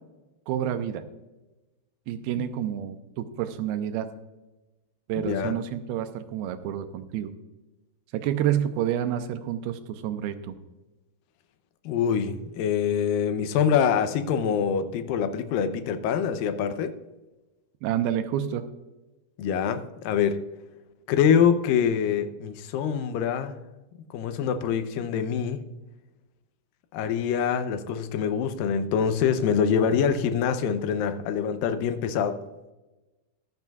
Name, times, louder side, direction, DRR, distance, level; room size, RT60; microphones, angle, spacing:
voice 1, 0.5-1.0 2.1-4.1 5.1-7.3 8.1-10.6 17.8-18.6, right 10 dB, 80° right, 8 dB, 2.4 m, -29 dB
voice 2, 5.2-5.6 11.9-16.9 19.4-20.4 21.1-23.6 24.1-25.6 26.9-32.4, left 7 dB, 75° left, 9 dB, 2.1 m, -25 dB
14.0 x 12.0 x 2.4 m, 1.1 s
omnidirectional pair, 4.7 m